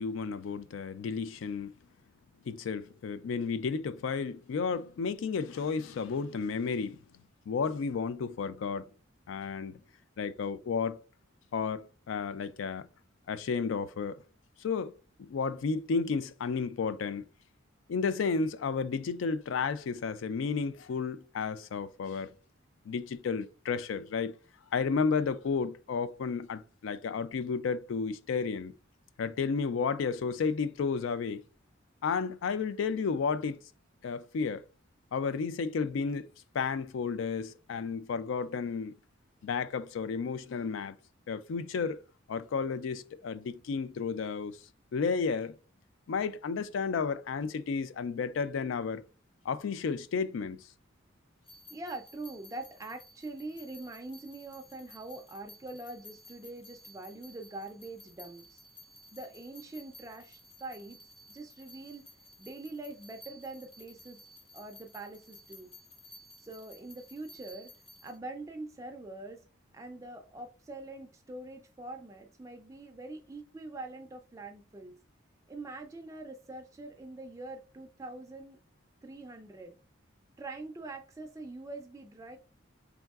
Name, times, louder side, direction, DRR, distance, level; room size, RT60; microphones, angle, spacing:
voice 1, 0.0-1.7 2.5-7.0 7.5-8.9 9.3-9.8 10.2-11.0 11.5-12.9 13.3-14.2 14.6-14.9 15.2-17.2 17.9-22.3 22.9-24.3 24.7-28.7 29.2-31.4 32.0-33.6 34.0-34.6 35.1-36.3 36.5-38.9 39.4-41.0 41.3-42.0 42.3-44.6 44.9-45.5 46.1-49.0 49.5-50.6, left 5 dB, 75° left, 0.3 m, -32 dB
sound 1, 51.4-68.2, left 1 dB, 25° left, 0.7 m, -55 dB
voice 2, 51.7-58.6 59.1-61.0 61.3-62.0 62.4-64.2 64.5-65.7 66.4-67.7 68.0-69.4 69.7-75.0 75.5-78.6 79.0-79.8 80.4-82.4, right 2 dB, 15° right, 0.3 m, -44 dB
4.6 x 3.4 x 2.3 m
head